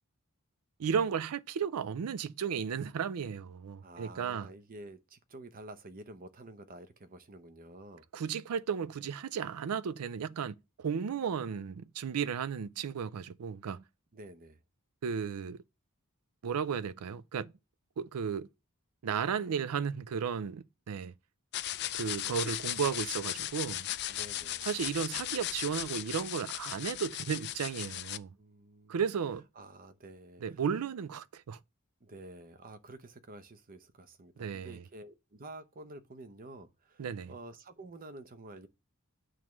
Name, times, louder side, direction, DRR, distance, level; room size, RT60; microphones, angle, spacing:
voice 1, 0.8-4.5 8.1-13.8 15.0-15.6 16.4-17.5 18.0-18.5 19.0-21.1 21.9-23.9 24.6-28.3 28.9-29.5 30.4-31.6 34.4-34.8 37.0-37.3, right 7 dB, 80° right, 0.4 m, -34 dB
voice 2, 3.8-8.0 14.1-14.6 24.1-24.7 28.4-29.0 29.6-30.6 32.0-38.7, right 2 dB, 40° right, 0.7 m, -50 dB
sound 1, 21.5-28.2, left 13 dB, 50° left, 0.4 m, -37 dB
9.0 x 3.2 x 6.0 m
head